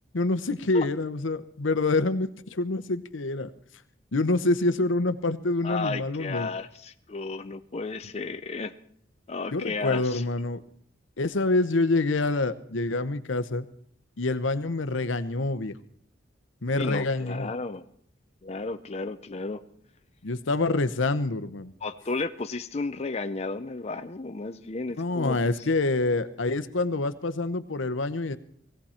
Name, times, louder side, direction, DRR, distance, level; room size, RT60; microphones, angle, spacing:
voice 1, 0.1-3.5 4.1-6.5 9.5-10.6 11.2-13.7 14.2-15.7 16.6-17.5 20.2-21.7 25.0-28.4, left 2 dB, 85° left, 13 dB, 0.9 m, -26 dB
voice 2, 5.6-8.7 9.3-10.2 16.7-17.8 18.4-19.6 21.8-25.4, left 3 dB, 35° left, 8 dB, 0.6 m, -33 dB
19.5 x 16.0 x 4.4 m, 0.63 s
head